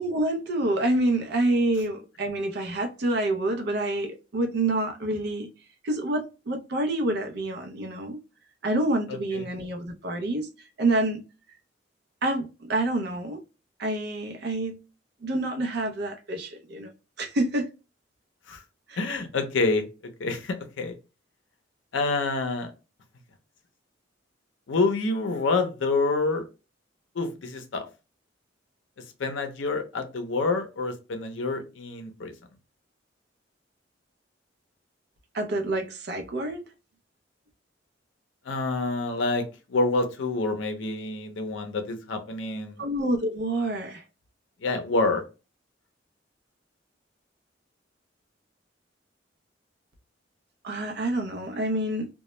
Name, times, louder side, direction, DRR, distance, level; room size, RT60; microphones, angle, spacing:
voice 1, 0.0-5.5 5.8-8.2 8.6-10.5 10.8-11.2 12.2-13.4 13.8-14.8 15.2-16.9 17.2-17.7 18.9-19.0 35.3-36.6 42.8-44.0 50.6-52.1, right 1 dB, 60° right, 0.5 m, -27 dB
voice 2, 9.1-9.5 18.5-18.6 19.0-19.8 20.2-21.0 21.9-22.7 24.7-26.4 27.2-27.9 29.2-32.3 38.5-39.4 39.7-42.8 44.6-45.2, left 3 dB, 80° left, 0.5 m, -27 dB
2.2 x 2.0 x 2.9 m
head